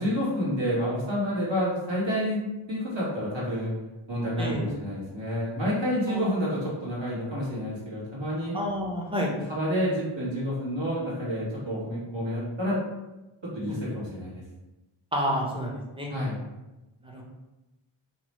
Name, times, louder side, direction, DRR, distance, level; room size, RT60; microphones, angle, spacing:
voice 1, 0.0-2.4 2.7-3.7 4.1-8.6 9.5-12.8 13.5-14.4 16.1-16.4, equal, 60° right, -7 dB, 1.3 m, -29 dB
voice 2, 4.4-4.7 6.1-6.4 8.5-9.4 13.7-13.8 15.1-16.1 17.0-17.2, equal, 10° right, -2 dB, 0.6 m, -30 dB
2.9 x 2.1 x 3.0 m, 1.0 s
wide cardioid pair, 45°, 50 cm